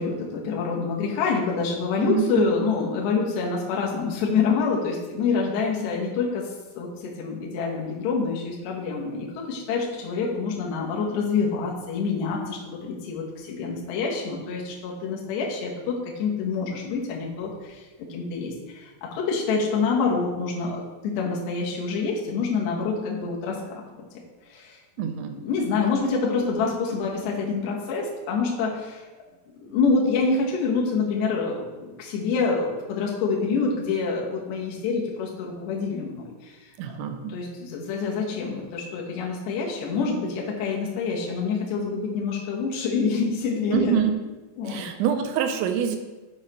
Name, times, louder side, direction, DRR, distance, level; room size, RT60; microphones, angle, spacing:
voice 1, 0.0-6.5 6.7-24.0 24.5-24.8 25.4-29.1 29.6-36.7 37.3-44.0 44.6-44.8, left 4 dB, 70° left, -2 dB, 3.1 m, -26 dB
voice 2, 25.0-25.4 36.8-37.3 43.7-44.1 44.6-46.0, right 8 dB, 85° right, 5 dB, 2.8 m, -25 dB
7.3 x 6.5 x 4.3 m, 1.2 s
omnidirectional pair, 5.8 m